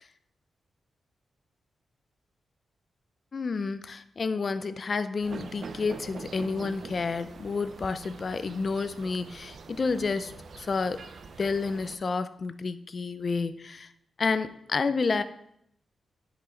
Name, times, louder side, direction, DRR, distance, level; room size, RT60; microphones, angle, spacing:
voice 1, 3.3-11.0 11.4-13.9 14.2-15.2, left 4 dB, 40° left, 12 dB, 0.4 m, -30 dB
sound 1, 5.2-12.0, right 5 dB, 55° right, 0.6 m, -44 dB
9.7 x 4.9 x 3.8 m, 0.73 s
wide cardioid pair, 140°, 0 cm